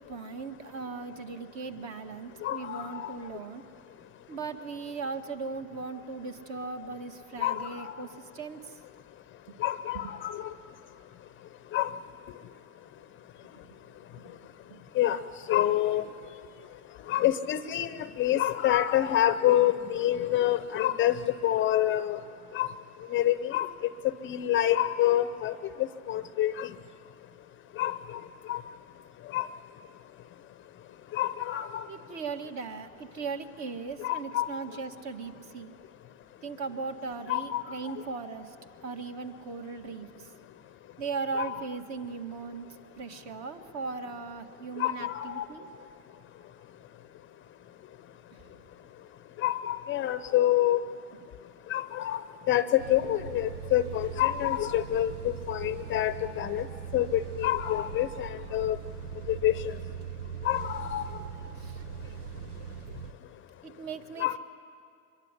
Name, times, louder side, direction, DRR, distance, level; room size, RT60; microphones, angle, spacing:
voice 1, 0.1-3.6 4.3-8.8 9.9-10.0 14.7-14.8 31.9-35.7 36.4-38.6 38.8-40.3 41.0-42.7 43.0-45.7 61.6-61.8 63.6-64.4, right 4 dB, 40° right, 6 dB, 2.0 m, -38 dB
voice 2, 2.4-3.2 7.4-8.0 9.6-10.5 11.7-11.9 15.0-15.2 15.5-16.1 17.1-21.2 21.4-22.2 22.5-22.7 23.1-23.7 24.2-26.7 27.8-28.2 28.5-28.6 29.3-29.5 31.1-31.9 34.0-34.5 37.3-38.0 41.4-41.6 44.8-45.5 49.4-50.8 51.7-56.7 56.9-58.8 59.3-59.5 60.4-61.2 64.2-64.4, left 13 dB, 25° left, 12 dB, 0.8 m, -27 dB
sound 1, 52.8-63.1, right 7 dB, 85° right, 1.3 m, -40 dB
25.0 x 22.0 x 10.0 m, 2.4 s
hypercardioid pair, 115°, 44 cm